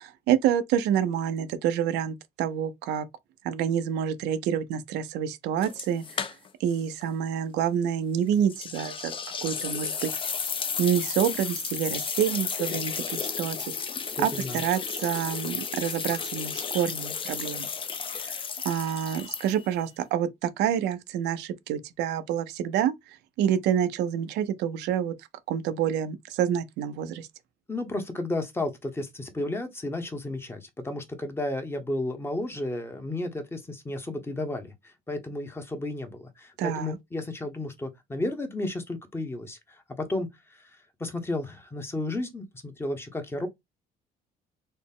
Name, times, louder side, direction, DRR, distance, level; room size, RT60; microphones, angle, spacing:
voice 1, 0.0-3.1 3.4-6.3 6.6-9.1 9.4-10.1 10.8-13.6 14.2-17.7 18.1-18.3 18.6-22.9 23.4-25.1 25.5-27.3 36.6-37.0, right 9 dB, 85° right, 0.5 m, -27 dB
sound 1, 5.6-6.7 7.0-7.1 8.5-19.8, left 6 dB, 30° left, 0.5 m, -33 dB
voice 2, 14.2-14.6 27.7-40.7 41.0-43.5, left 2 dB, 15° left, 0.8 m, -33 dB
4.0 x 2.0 x 3.6 m
cardioid pair, 110°, 17 cm